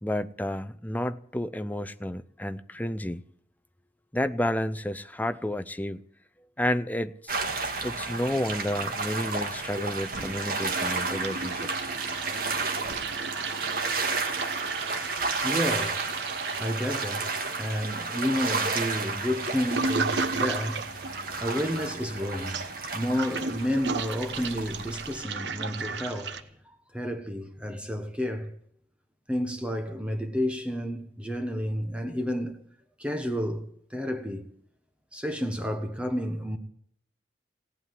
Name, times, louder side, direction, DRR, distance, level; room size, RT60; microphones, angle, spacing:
voice 1, 0.0-3.2 4.1-6.0 6.6-7.4 7.8-11.7, left 1 dB, 10° left, 0.6 m, -31 dB
sound 1, 7.3-25.2, right 3 dB, 55° right, 2.2 m, -32 dB
Toilet flush, 8.8-9.7 9.9-26.4, right 4 dB, 85° right, 1.0 m, -35 dB
voice 2, 15.4-28.5 29.3-32.6 33.0-34.5 35.1-36.6, equal, 5° right, 1.3 m, -31 dB
17.0 x 8.7 x 9.5 m
head